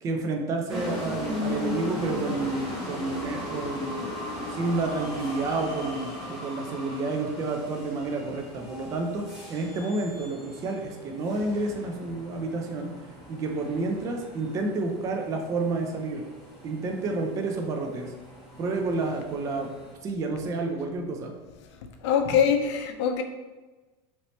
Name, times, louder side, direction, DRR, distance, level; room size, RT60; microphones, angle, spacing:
voice 1, 0.0-4.1 4.5-12.9 13.3-16.2 16.6-18.1 18.6-19.7 20.0-21.3, right 3 dB, 25° right, 2 dB, 0.3 m, -30 dB
sound 1, 0.7-19.9, left 1 dB, ahead, 0.8 m, -38 dB
voice 2, 22.0-23.2, left 7 dB, 90° left, 5 dB, 0.5 m, -23 dB
2.9 x 2.8 x 3.1 m, 1.2 s
supercardioid pair, 160°, 14 cm